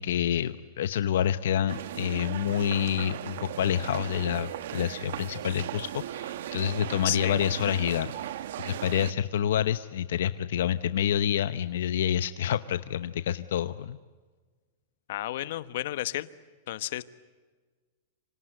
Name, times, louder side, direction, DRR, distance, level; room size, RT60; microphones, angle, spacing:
voice 1, 0.0-8.1 8.6-14.0, left 10 dB, 80° left, 12 dB, 0.9 m, -28 dB
sound 1, 1.7-9.1, right 12 dB, 70° right, 1.0 m, -37 dB
voice 2, 7.0-7.4 15.1-16.3 16.7-17.0, left 14 dB, 60° left, 13 dB, 1.2 m, -32 dB
28.0 x 26.0 x 7.9 m, 1.4 s
supercardioid pair, 165°, 0 cm